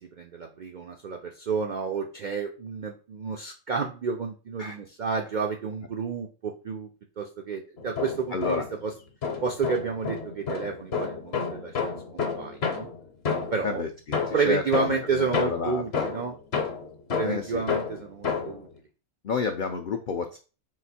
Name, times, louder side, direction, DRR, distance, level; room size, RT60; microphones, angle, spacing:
voice 1, 0.1-6.9 7.2-8.9 9.4-12.9 13.5-13.8 14.3-16.3 17.1-18.7, right 5 dB, 80° right, 2 dB, 0.4 m, -30 dB
sound 1, 7.8-8.8 9.2-13.7 14.1-18.7, left 5 dB, 55° left, 1.0 m, -30 dB
voice 2, 8.3-8.6 13.6-16.1 17.2-17.6 19.2-20.4, left 5 dB, 75° left, 4 dB, 0.4 m, -30 dB
3.9 x 2.6 x 4.1 m, 0.35 s
omnidirectional pair, 1.5 m